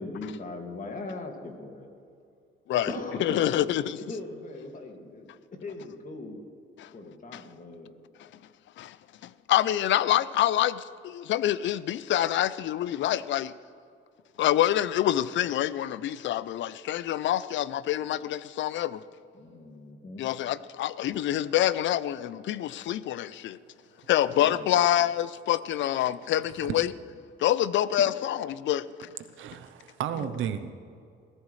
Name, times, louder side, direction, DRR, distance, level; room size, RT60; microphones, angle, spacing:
voice 1, 0.0-1.9 2.9-5.3 5.6-6.4 6.9-7.9 19.3-20.2 24.3-24.7 30.2-30.5, left 2 dB, 40° left, 2.2 m, -39 dB
voice 2, 3.2-4.0 6.8-6.9 7.3-7.4 8.8-9.0 9.2-13.5 14.4-19.0 20.2-23.6 24.1-26.9 27.4-29.1, left 12 dB, 70° left, 0.5 m, -26 dB
voice 3, 29.2-30.7, right 9 dB, 80° right, 0.8 m, -33 dB
22.0 x 14.0 x 3.2 m
cardioid pair, 90°, 20 cm